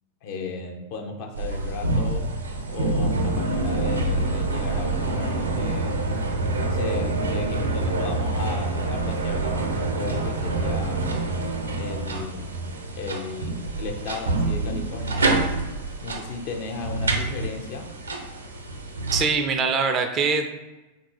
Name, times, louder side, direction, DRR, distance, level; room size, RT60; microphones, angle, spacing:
voice 1, 0.2-2.3 2.7-6.0 6.5-11.0 11.8-12.5 13.0-15.4 16.0-17.9, left 4 dB, 45° left, 3 dB, 0.7 m, -35 dB
sound 1, 1.3-19.2, right 2 dB, 75° right, 0.6 m, -26 dB
voice 2, 19.1-20.6, right 5 dB, 30° right, 6 dB, 0.4 m, -23 dB
3.8 x 2.6 x 4.5 m, 1.1 s
figure-of-eight pair, 90°, 0 cm